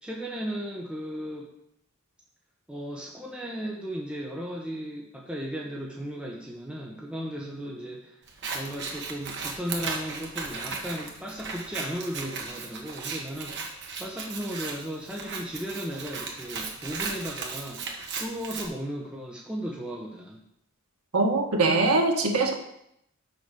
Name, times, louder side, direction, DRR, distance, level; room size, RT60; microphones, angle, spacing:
voice 1, 0.0-1.5 2.7-8.1 8.5-20.5, equal, 5° right, -3 dB, 1.0 m, -36 dB
Scissors, 8.3-18.7, right 4 dB, 55° right, 1.5 m, -36 dB
voice 2, 21.1-22.5, right 3 dB, 85° right, 2 dB, 1.5 m, -22 dB
6.6 x 6.0 x 6.7 m, 0.76 s
head